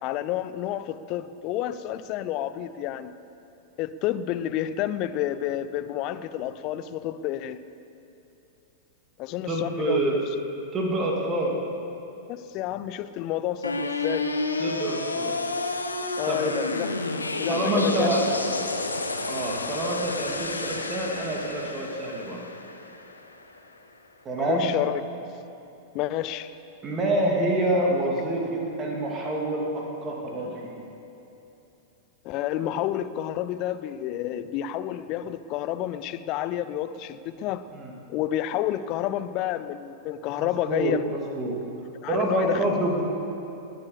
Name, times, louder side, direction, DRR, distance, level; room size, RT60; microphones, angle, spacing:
voice 1, 0.0-3.1 3.8-7.6 9.2-10.1 12.3-14.3 16.2-16.9 17.4-18.1 24.4-25.0 25.9-26.6 32.2-37.7 38.1-41.0 42.0-42.6, left 12 dB, 40° left, 14 dB, 0.6 m, -30 dB
voice 2, 9.5-10.2 10.7-11.6 14.6-15.4 16.3-16.5 17.5-18.2 19.3-22.4 24.2-24.7 26.8-30.8 37.7-37.9 40.4-41.6 42.1-43.0, right 1 dB, 25° right, -1 dB, 2.7 m, -27 dB
sound 1, 13.6-23.7, left 3 dB, 80° left, 0.9 m, -30 dB
19.5 x 7.7 x 6.8 m, 2.9 s
figure-of-eight pair, 95°, 0 cm